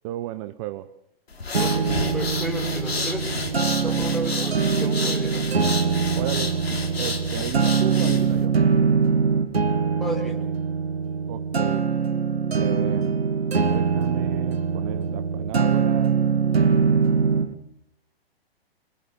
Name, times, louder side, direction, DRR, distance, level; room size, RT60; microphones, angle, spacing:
voice 1, 0.0-1.0 6.1-6.6 7.0-8.6 11.3-11.9 12.6-13.2 13.5-16.2, right 15 dB, 30° right, 0.9 m, -33 dB
sound 1, 1.3-8.4, left 3 dB, 75° left, 4.7 m, -31 dB
sound 2, 1.5-17.5, right 5 dB, 80° right, 1.8 m, -23 dB
voice 2, 1.6-5.5 10.0-10.5, equal, ahead, 4.6 m, -33 dB
26.5 x 23.5 x 7.0 m
figure-of-eight pair, 125°, 31 cm